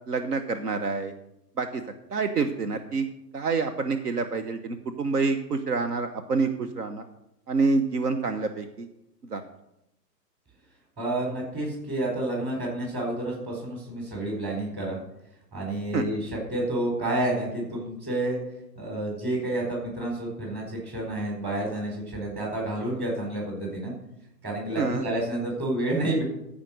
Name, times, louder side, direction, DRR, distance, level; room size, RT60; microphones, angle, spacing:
voice 1, 0.1-1.1 1.6-1.8 2.1-3.1 3.3-7.0 7.5-8.9 9.3-9.5 15.9-16.0 24.8-25.0, right 4 dB, 70° right, 8 dB, 1.0 m, -27 dB
voice 2, 11.0-15.0 15.5-18.4 18.8-23.9 24.4-26.2, right 1 dB, 20° right, -1 dB, 4.3 m, -29 dB
14.0 x 5.1 x 6.5 m, 0.84 s
figure-of-eight pair, 120°, 49 cm